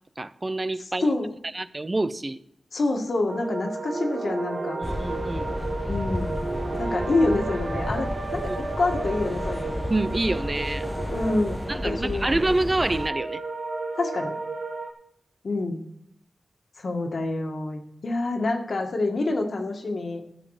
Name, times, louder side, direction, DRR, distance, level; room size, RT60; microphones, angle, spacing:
voice 1, 0.2-1.1 1.5-2.4 4.8-5.5 8.5-8.6 9.9-10.8 11.7-13.4, right 2 dB, 25° right, 0.7 m, -27 dB
voice 2, 1.0-1.3 2.7-4.8 5.9-6.4 6.8-9.8 11.1-12.5 14.0-14.3 15.4-15.8 16.8-20.2, left 2 dB, 65° left, 2.0 m, -27 dB
sound 1, 3.3-14.9, right 3 dB, 70° right, 1.9 m, -33 dB
sound 2, 4.8-13.1, left 1 dB, 15° left, 0.6 m, -32 dB
14.5 x 8.6 x 5.0 m
wide cardioid pair, 95°, 0 cm